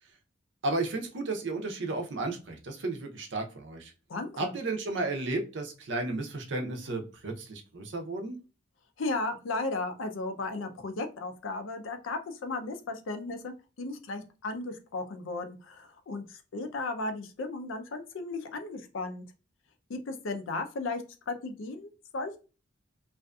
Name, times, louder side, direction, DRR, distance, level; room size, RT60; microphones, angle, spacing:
voice 1, 0.6-3.9 4.4-8.4, right 2 dB, 60° right, 3 dB, 0.6 m, -33 dB
voice 2, 4.1-4.5 9.0-19.2 19.9-22.4, left 3 dB, 75° left, 7 dB, 0.4 m, -35 dB
2.6 x 2.4 x 2.2 m, 0.33 s
head